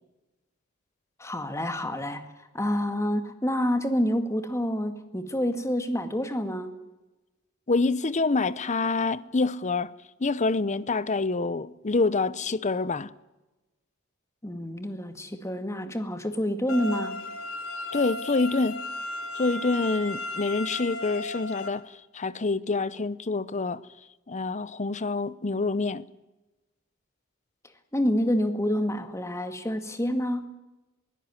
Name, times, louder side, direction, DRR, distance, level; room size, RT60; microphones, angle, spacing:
voice 1, 1.2-6.7 14.4-17.2 27.9-30.5, equal, 15° left, 2.0 m, -28 dB
voice 2, 7.7-9.9 10.2-13.1 17.9-18.8 19.3-23.8 24.3-26.1, left 3 dB, 35° left, 0.8 m, -26 dB
sound 1, 16.7-21.7, left 2 dB, 70° left, 3.0 m, -35 dB
22.5 x 16.5 x 9.7 m
head